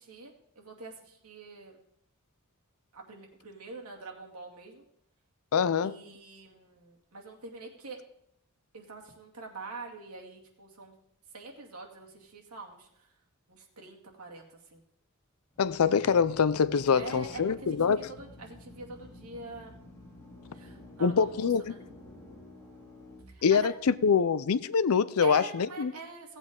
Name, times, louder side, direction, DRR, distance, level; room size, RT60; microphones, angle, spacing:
voice 1, 0.0-1.8 2.9-4.8 5.8-8.0 8.7-11.0 11.3-13.1 13.5-14.8 16.9-19.8 20.5-21.8 23.3-23.7 25.2-26.4, right 3 dB, 85° right, 2.3 m, -45 dB
voice 2, 5.5-5.9 15.6-18.1 21.0-21.6 23.4-25.9, left 6 dB, 75° left, 0.5 m, -25 dB
Drill, 15.5-24.1, left 2 dB, 15° left, 2.8 m, -51 dB
17.0 x 8.1 x 3.7 m
head